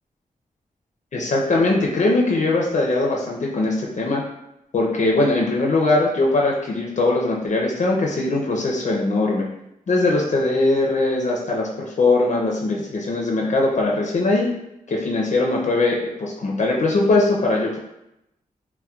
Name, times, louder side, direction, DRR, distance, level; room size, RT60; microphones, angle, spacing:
voice 1, 1.1-4.2 4.7-9.5 9.9-14.5 14.9-17.8, left 2 dB, 55° left, -2 dB, 0.5 m, -21 dB
4.2 x 2.1 x 2.3 m, 0.85 s
cardioid pair, 75°, 15 cm